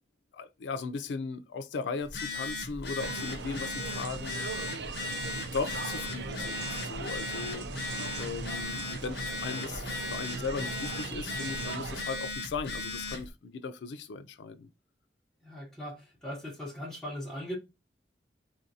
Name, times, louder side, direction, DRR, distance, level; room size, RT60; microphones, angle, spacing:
voice 1, 0.3-4.3 5.4-7.7 8.2-14.7, left 4 dB, 90° left, 0.4 m, -37 dB
Telephone, 2.0-13.3, left 2 dB, 70° left, 0.8 m, -37 dB
sound 1, 3.0-12.1, right 4 dB, 75° right, 0.5 m, -39 dB
voice 2, 15.4-17.6, equal, 5° left, 1.1 m, -39 dB
3.7 x 2.5 x 2.7 m
head